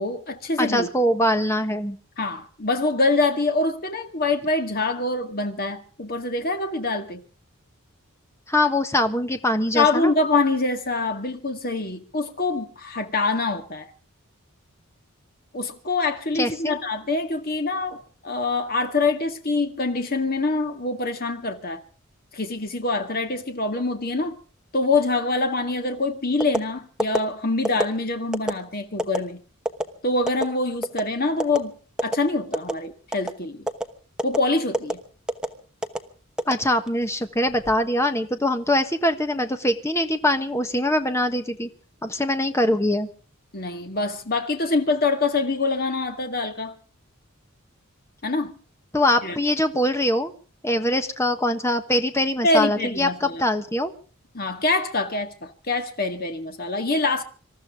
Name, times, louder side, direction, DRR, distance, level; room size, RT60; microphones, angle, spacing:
voice 1, 0.0-0.9 2.2-7.2 9.7-13.9 15.5-21.8 22.3-24.4 24.7-29.4 30.0-31.7 32.0-33.7 34.2-35.0 43.5-46.7 48.2-48.5 49.2-49.4 52.4-53.4 54.3-57.2, left 3 dB, 45° left, 2.0 m, -25 dB
voice 2, 0.6-2.0 8.5-10.1 16.3-16.8 36.5-41.7 42.0-43.1 48.9-50.3 50.6-53.9, left 1 dB, 15° left, 1.4 m, -23 dB
sound 1, 26.4-26.6 27.0-27.2 27.6-27.9 28.3-28.5 29.0-29.2 29.6-29.8 30.3-30.4 30.8-31.1 31.4-31.6 32.0-32.2 32.5-32.8 33.1-33.3 33.7-33.8 34.2-34.4 34.7-34.9 35.3-35.5 35.8-36.0 36.4-37.0 37.5-37.7, right 1 dB, 5° right, 1.0 m, -24 dB
26.5 x 13.5 x 3.7 m
head